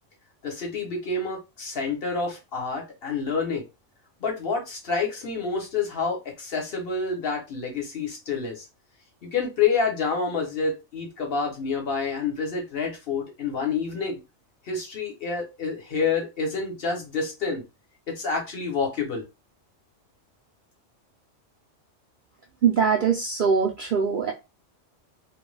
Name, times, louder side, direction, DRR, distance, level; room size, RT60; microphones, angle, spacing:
voice 1, 0.4-3.6 4.2-8.7 9.2-14.2 14.6-17.6 18.1-19.2, left 4 dB, 55° left, 0.9 m, -28 dB
voice 2, 22.6-24.3, right 6 dB, 60° right, 0.5 m, -22 dB
2.4 x 2.2 x 3.1 m
omnidirectional pair, 1.3 m